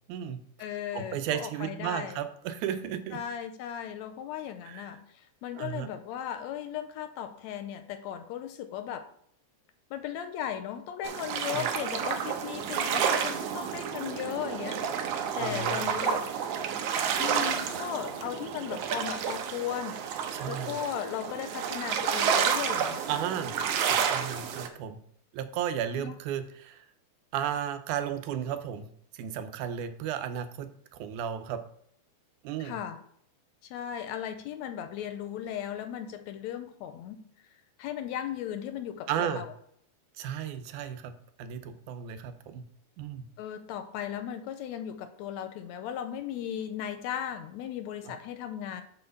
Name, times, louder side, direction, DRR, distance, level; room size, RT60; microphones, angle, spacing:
voice 1, 0.1-0.4 0.9-3.2 4.7-4.9 5.6-5.9 11.5-11.7 15.4-15.9 20.3-20.8 23.1-23.5 24.1-25.0 25.3-26.9 27.3-28.9 29.1-31.6 32.4-32.8 39.1-39.4 40.2-41.1 41.4-42.6 43.0-43.3 48.0-48.1, right 9 dB, 90° right, 9 dB, 2.2 m, -34 dB
voice 2, 0.6-2.2 3.1-9.1 9.9-14.8 15.4-16.3 17.2-20.0 20.5-23.2 26.0-26.2 32.6-33.0 33.7-37.2 37.8-39.5 43.4-48.8, left 10 dB, 80° left, 9 dB, 1.7 m, -36 dB
sound 1, 11.0-24.7, right 7 dB, 70° right, 1.6 m, -30 dB
5.9 x 4.6 x 6.4 m, 0.67 s
omnidirectional pair, 3.4 m